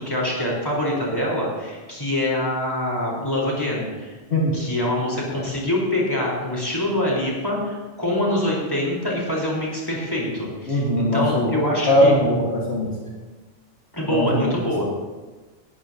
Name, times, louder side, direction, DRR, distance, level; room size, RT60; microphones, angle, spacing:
voice 1, 0.0-4.2 4.5-12.1 13.9-14.8, left 1 dB, 20° left, -4 dB, 4.1 m, -25 dB
voice 2, 10.7-11.5 11.9-12.9 14.1-14.5, left 1 dB, 65° left, -3 dB, 2.0 m, -20 dB
18.0 x 14.0 x 2.8 m, 1.3 s
omnidirectional pair, 1.3 m